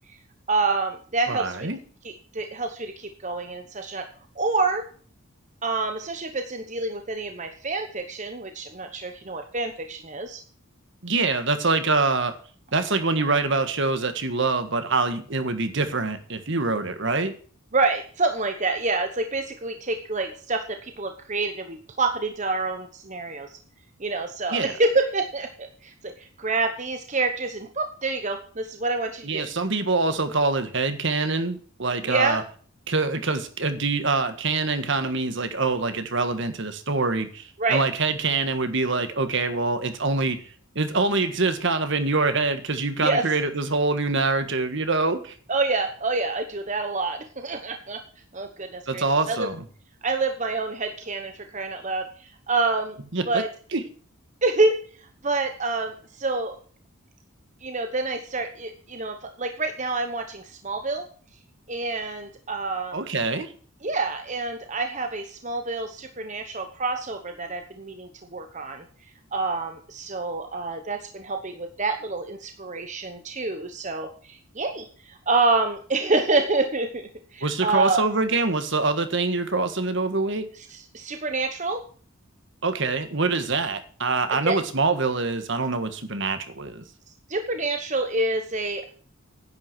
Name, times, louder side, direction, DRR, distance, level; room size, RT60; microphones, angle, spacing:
voice 1, 0.5-1.7 2.0-4.1 4.4-4.9 5.6-10.4 17.7-23.6 24.0-29.5 32.0-32.4 37.6-37.8 43.0-43.2 45.5-48.0 48.3-49.5 50.0-53.0 53.3-53.5 54.4-56.6 57.6-61.1 61.7-63.1 63.8-68.8 69.3-78.0 80.6-81.8 84.3-84.6 87.3-88.9, right 3 dB, 35° right, 6 dB, 1.1 m, -27 dB
voice 2, 1.3-1.8 11.0-12.3 12.7-17.3 24.5-24.7 29.2-32.4 32.9-40.4 40.7-45.3 48.9-49.6 53.1-53.4 53.7-53.8 62.9-63.5 77.4-80.5 82.6-86.8, right 3 dB, 55° right, 9 dB, 1.6 m, -25 dB
10.5 x 9.2 x 6.1 m, 0.43 s
head